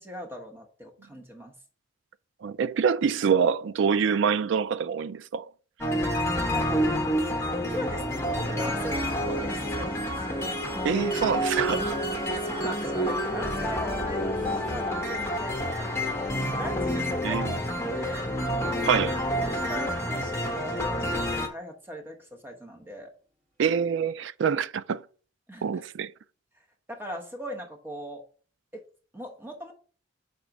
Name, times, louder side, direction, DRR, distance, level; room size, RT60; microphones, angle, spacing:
voice 1, 0.0-1.5 6.5-6.9 7.7-10.5 12.3-15.9 16.6-17.6 17.8-18.3 18.6-18.9 19.4-23.1 25.5-25.8 26.9-28.2 28.7-28.8 29.1-29.7, equal, 10° right, 1.1 m, -39 dB
voice 2, 2.4-5.5 10.8-12.0 17.2-17.5 18.8-19.2 23.6-25.0 25.6-26.1, right 6 dB, 65° right, 0.3 m, -25 dB
sound 1, 5.8-21.5, equal, 10° left, 1.0 m, -28 dB
Harp, 9.6-21.1, left 1 dB, 40° right, 2.9 m, -49 dB
5.1 x 4.2 x 5.9 m
head